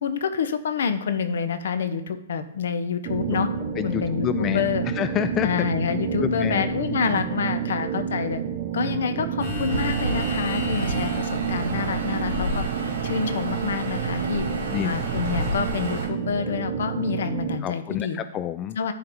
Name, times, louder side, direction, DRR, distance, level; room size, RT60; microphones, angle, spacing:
voice 1, 0.0-3.5 3.8-4.8 5.4-8.4 8.7-12.7 13.0-14.5 14.8-18.2 18.8-18.9, left 6 dB, 70° left, 10 dB, 0.9 m, -27 dB
sound 1, 3.0-17.6, right 7 dB, 45° right, 0.7 m, -29 dB
voice 2, 3.8-4.7 4.9-6.7 14.7-14.9 17.6-18.8, left 11 dB, 20° left, 11 dB, 0.3 m, -28 dB
sound 2, 9.4-16.1, left 3 dB, 50° left, 1.8 m, -34 dB
sound 3, 9.7-16.1, right 4 dB, 85° right, 1.5 m, -33 dB
11.0 x 3.9 x 4.6 m, 0.74 s
hypercardioid pair, 155°, 0 cm